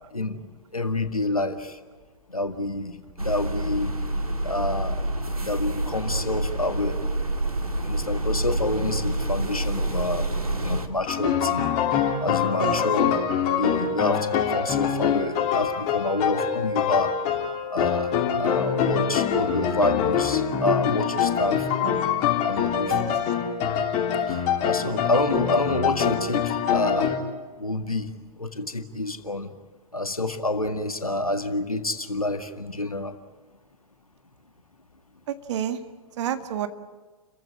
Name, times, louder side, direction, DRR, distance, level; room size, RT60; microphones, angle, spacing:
voice 1, 0.7-1.8 2.3-4.0 4.4-5.0 5.4-7.0 7.8-10.3 10.6-11.6 12.2-13.1 13.5-17.2 17.7-18.1 18.4-21.9 22.4-23.1 24.3-27.1 27.6-28.1 28.4-29.5 29.9-33.1, left 2 dB, 85° left, 8 dB, 1.9 m, -28 dB
sound 1, 3.2-10.9, right 1 dB, 90° right, 2.1 m, -27 dB
sound 2, 11.1-27.2, left 8 dB, 40° left, 3.4 m, -24 dB
voice 2, 35.3-35.8 36.2-36.7, right 9 dB, 55° right, 9 dB, 1.9 m, -29 dB
30.0 x 15.5 x 9.9 m, 1.4 s
figure-of-eight pair, 100°, 18 cm